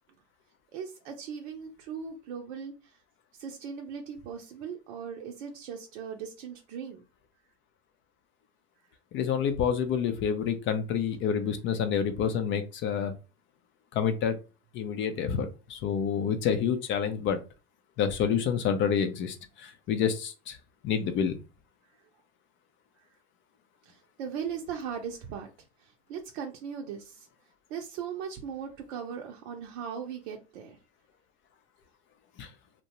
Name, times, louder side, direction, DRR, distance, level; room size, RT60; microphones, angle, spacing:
voice 1, 0.7-3.0 3.4-7.0 23.9-25.5 25.8-27.3 27.7-30.8, right 7 dB, 65° right, 0.7 m, -38 dB
voice 2, 9.1-13.1 13.9-14.3 14.7-17.4 18.0-20.6 20.8-21.4 32.4-32.5, left 7 dB, 35° left, 0.4 m, -28 dB
2.6 x 2.1 x 2.9 m
hypercardioid pair, 105°, 36 cm